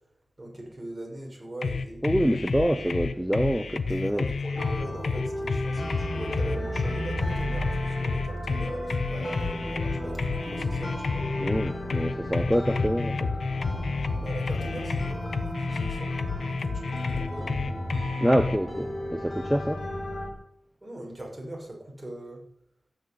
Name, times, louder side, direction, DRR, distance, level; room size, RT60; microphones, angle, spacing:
voice 1, 0.4-2.0 3.9-11.3 14.2-17.5 20.8-22.4, right 1 dB, 20° right, 6.6 m, -41 dB
sound 1, 1.6-18.6, left 4 dB, 80° left, 1.1 m, -30 dB
voice 2, 2.0-4.3 11.4-13.3 18.2-19.8, equal, 5° right, 1.0 m, -26 dB
sound 2, 4.5-20.3, left 1 dB, 40° left, 5.5 m, -34 dB
14.5 x 9.4 x 9.7 m
wide cardioid pair, 105°, 0 cm